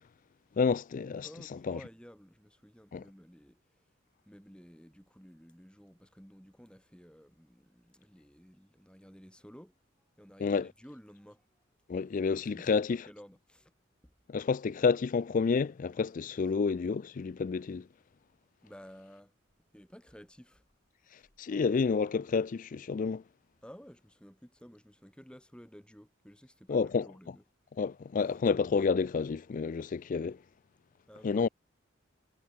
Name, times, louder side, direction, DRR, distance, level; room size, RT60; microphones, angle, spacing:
voice 1, 0.6-1.3 1.7-1.8 2.9-3.0 10.4-10.7 11.9-13.0 14.3-17.9 21.4-23.2 26.7-27.1 27.8-30.4 31.2-31.5, left 5 dB, 40° left, 0.3 m, -29 dB
voice 2, 1.2-3.9 4.3-9.8 10.2-11.5 12.3-12.7 13.0-13.7 14.0-14.1 18.6-19.3 19.7-20.6 23.6-27.4 31.1-31.5, equal, 5° left, 5.3 m, -54 dB
head